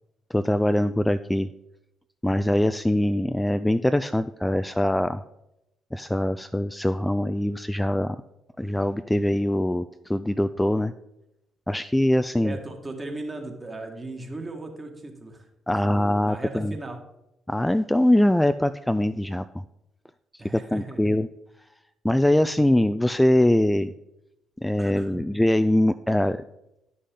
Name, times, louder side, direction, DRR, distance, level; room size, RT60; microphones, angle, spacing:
voice 1, 0.3-1.5 2.2-5.2 5.9-8.2 8.6-10.9 11.7-12.6 15.7-16.7 17.5-19.5 20.3-21.3 22.0-23.9 24.6-26.4, left 1 dB, 10° left, 11 dB, 0.3 m, -23 dB
voice 2, 12.4-15.5 15.8-17.0 20.4-21.2 24.8-25.2, right 2 dB, 30° right, 3 dB, 1.9 m, -37 dB
11.0 x 6.3 x 3.8 m, 0.88 s
hypercardioid pair, 45°, 0 cm